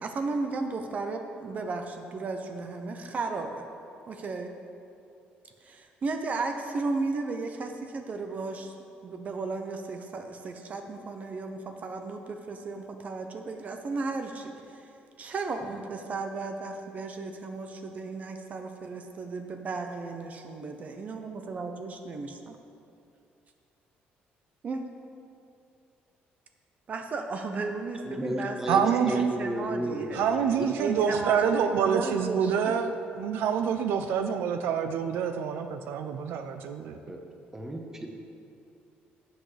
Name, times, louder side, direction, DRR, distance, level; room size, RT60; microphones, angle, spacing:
voice 1, 0.0-3.7 4.1-4.5 5.6-8.7 9.0-14.9 15.2-22.5 24.6-24.9 26.9-30.2 30.8-32.8, right 3 dB, 40° right, 5 dB, 0.7 m, -34 dB
voice 2, 28.1-30.7 37.1-37.2 37.5-38.1, right 1 dB, 15° right, 2 dB, 1.2 m, -33 dB
voice 3, 28.7-29.3 30.1-32.9 33.2-37.0, right 7 dB, 85° right, 7 dB, 0.5 m, -27 dB
14.0 x 7.9 x 3.3 m, 2.6 s
cardioid pair, 110°, 4 cm